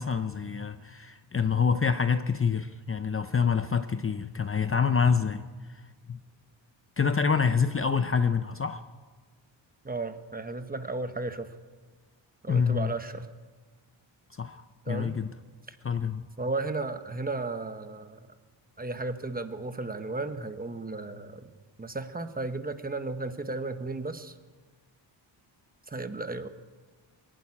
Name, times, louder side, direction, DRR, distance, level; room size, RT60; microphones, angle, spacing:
voice 1, 0.0-5.4 5.7-5.8 6.1-6.2 7.0-8.8 12.5-12.9 14.3-15.3 15.8-16.2, left 6 dB, 30° left, 10 dB, 0.6 m, -26 dB
voice 2, 9.8-11.5 12.4-13.3 14.9-15.2 16.4-18.3 18.8-21.5 21.8-24.3 25.9-26.5, right 3 dB, 20° right, 9 dB, 1.0 m, -34 dB
22.5 x 11.5 x 9.8 m, 1.4 s
wide cardioid pair, 175°, 45 cm